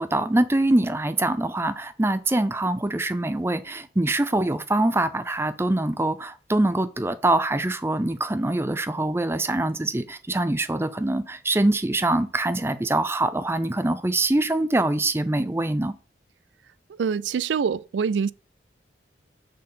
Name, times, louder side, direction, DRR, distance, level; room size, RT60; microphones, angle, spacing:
voice 1, 0.0-15.9, right 2 dB, 15° right, 0.5 m, -24 dB
voice 2, 17.0-18.3, right 6 dB, 85° right, 0.4 m, -25 dB
6.5 x 4.1 x 5.5 m
head